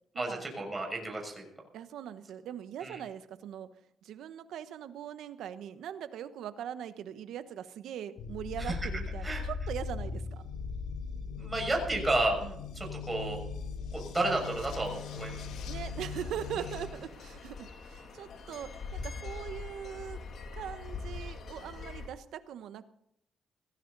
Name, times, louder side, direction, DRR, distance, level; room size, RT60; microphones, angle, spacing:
voice 1, 0.1-1.5 2.8-3.0 8.6-8.9 9.2-9.4 11.4-12.4 12.7-13.4 13.9-15.5, right 2 dB, 15° right, 1 dB, 6.4 m, -32 dB
voice 2, 1.7-3.7 4.0-10.4 12.4-12.5 15.7-20.2 20.5-22.8, right 9 dB, 80° right, 11 dB, 1.2 m, -41 dB
sound 1, 8.2-16.9, left 5 dB, 85° left, 2.9 m, -39 dB
sound 2, 14.3-22.1, left 4 dB, 60° left, 2.8 m, -44 dB
18.0 x 16.0 x 4.1 m, 0.73 s
cardioid pair, 90°, 0 cm